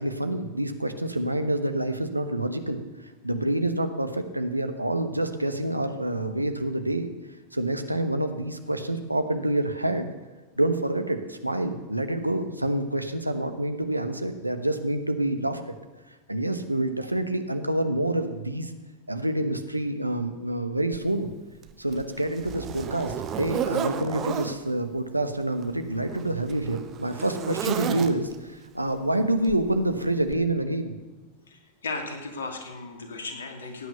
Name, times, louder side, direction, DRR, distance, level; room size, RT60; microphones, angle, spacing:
voice 1, 0.0-2.8 3.2-7.1 7.5-10.1 10.6-15.6 16.3-18.7 19.1-21.3 21.8-31.0, right 1 dB, 85° right, 8 dB, 1.2 m, -27 dB
Zipper (clothing), 20.9-21.0 21.6-24.6 25.5-28.5 29.5-29.7 30.3-30.4, right 9 dB, 30° right, 1.2 m, -33 dB
voice 2, 31.5-33.9, left 3 dB, 65° left, 4 dB, 2.7 m, -36 dB
16.5 x 9.3 x 6.9 m, 1.2 s
figure-of-eight pair, 90°, 0 cm